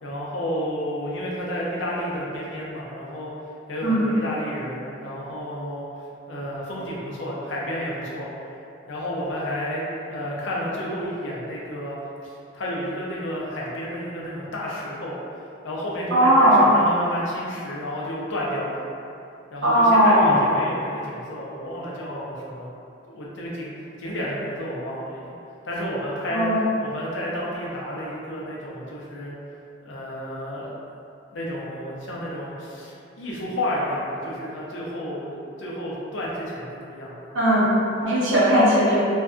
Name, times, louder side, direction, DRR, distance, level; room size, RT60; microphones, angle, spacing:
voice 1, 0.0-3.4 3.7-5.9 6.3-8.3 8.9-12.0 12.2-15.1 15.6-18.8 19.5-22.7 23.1-23.7 24.0-25.3 25.6-26.5 26.8-29.3 29.8-30.8 31.3-37.3, equal, 70° left, -5 dB, 0.5 m, -31 dB
voice 2, 16.1-16.7 19.6-20.4 26.3-26.6 37.3-39.0, equal, 70° right, -10 dB, 0.9 m, -18 dB
2.6 x 2.3 x 2.4 m, 2.6 s
head